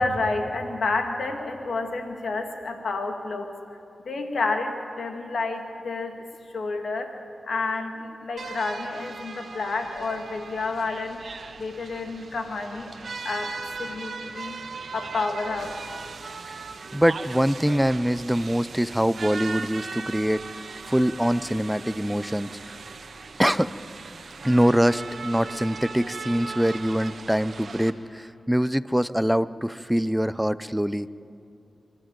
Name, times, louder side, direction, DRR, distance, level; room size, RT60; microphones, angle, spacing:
voice 1, 0.0-3.5 4.1-6.1 6.5-11.2 11.6-13.0 13.2-13.5 13.8-14.6 14.9-15.7, left 3 dB, 75° left, 5 dB, 2.1 m, -29 dB
sound 1, 8.4-27.9, right 4 dB, 70° right, 1.4 m, -39 dB
voice 2, 16.9-22.8 23.4-23.7 24.4-31.1, equal, 5° right, 16 dB, 0.6 m, -24 dB
25.0 x 12.5 x 9.0 m, 2.7 s
cardioid pair, 45°, 0 cm